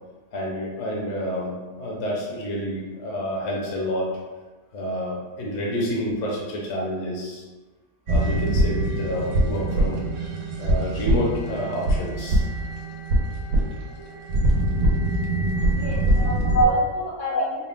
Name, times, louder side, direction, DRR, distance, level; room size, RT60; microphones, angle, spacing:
voice 1, 0.3-4.1 4.7-7.4 8.1-10.0 10.6-12.4 16.5-16.8 17.3-17.4, equal, 60° left, -3 dB, 1.0 m, -27 dB
sound 1, 8.1-16.7, right 1 dB, 80° right, 1.3 m, -23 dB
voice 2, 15.7-17.7, left 2 dB, 75° left, -6 dB, 1.8 m, -34 dB
4.6 x 2.1 x 3.4 m, 1.2 s
omnidirectional pair, 1.7 m